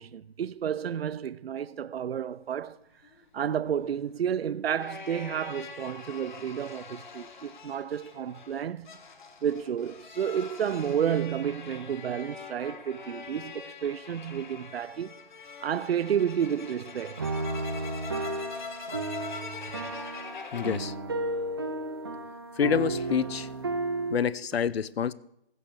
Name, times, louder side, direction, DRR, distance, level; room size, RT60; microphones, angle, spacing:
voice 1, 0.0-2.8 3.3-8.9 9.4-15.2 15.6-17.3, right 8 dB, 75° right, 0.5 m, -31 dB
sound 1, 3.0-20.8, left 5 dB, 50° left, 1.3 m, -43 dB
sound 2, 17.2-24.5, right 2 dB, 25° right, 0.5 m, -33 dB
voice 2, 20.5-20.9 22.6-23.5 24.1-25.1, left 7 dB, 75° left, 0.6 m, -27 dB
15.0 x 6.0 x 6.3 m
hypercardioid pair, 160°, 31 cm